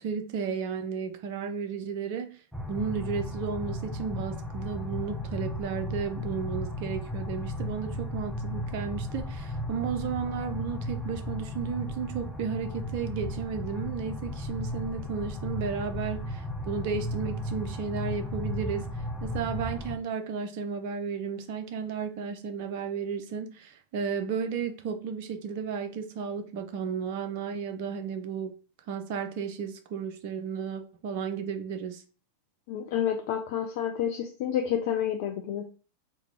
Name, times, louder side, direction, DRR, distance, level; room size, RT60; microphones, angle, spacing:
voice 1, 0.0-2.4 2.7-18.9 19.2-28.5 28.9-32.0, right 6 dB, 50° right, 0.6 m, -33 dB
sound 1, 2.5-20.0, left 1 dB, 5° right, 0.6 m, -35 dB
voice 2, 32.7-35.6, left 9 dB, 50° left, 0.4 m, -29 dB
2.9 x 2.3 x 3.8 m
figure-of-eight pair, 90°, 0 cm